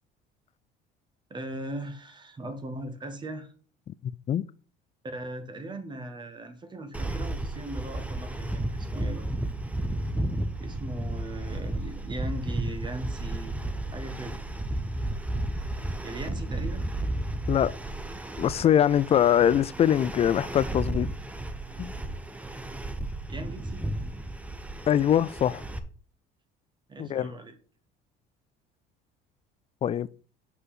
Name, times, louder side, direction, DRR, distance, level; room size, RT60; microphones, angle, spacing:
voice 1, 1.3-3.5 5.1-9.3 10.6-13.5 13.9-14.4 16.0-16.8 23.3-23.9 26.9-27.5, right 1 dB, 25° right, 1.3 m, -39 dB
voice 2, 3.9-4.5 17.5-17.8 18.4-21.1 21.8-21.9 24.9-25.6 27.0-27.3 29.8-30.1, left 10 dB, 35° left, 0.4 m, -23 dB
sound 1, 6.9-25.8, right 1 dB, 5° right, 0.8 m, -33 dB
6.3 x 5.5 x 5.8 m
cardioid pair, 115°, 19 cm